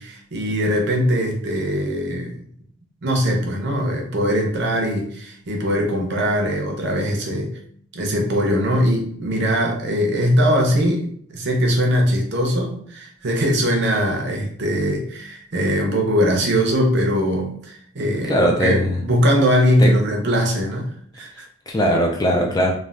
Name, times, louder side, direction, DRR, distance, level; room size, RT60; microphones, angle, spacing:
voice 1, 0.0-2.4 3.0-7.5 7.9-20.9 21.1-21.5, equal, 55° right, 1 dB, 0.6 m, -21 dB
voice 2, 18.3-19.0 19.8-20.0 21.7-22.7, equal, 20° left, 0 dB, 0.3 m, -19 dB
3.2 x 2.2 x 2.4 m, 0.62 s
head